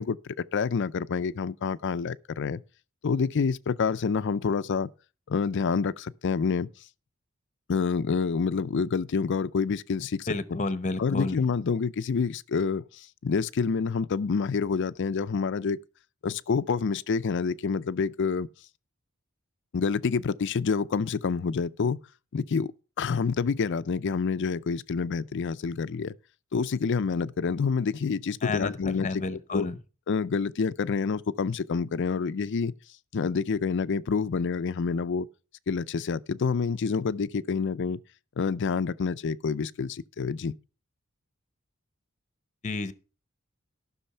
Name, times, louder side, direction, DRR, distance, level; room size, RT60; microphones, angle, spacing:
voice 1, 0.0-2.6 3.0-4.9 5.3-6.7 7.7-10.6 11.0-15.8 16.2-18.5 19.7-22.0 22.3-22.7 23.0-26.1 26.5-29.2 29.5-29.7 30.1-32.7 33.1-35.3 35.7-38.0 38.4-40.5, left 5 dB, 60° left, 0.5 m, -28 dB
voice 2, 10.3-11.4 28.4-29.7 42.6-42.9, left 3 dB, 35° left, 0.8 m, -31 dB
13.5 x 6.3 x 5.5 m
head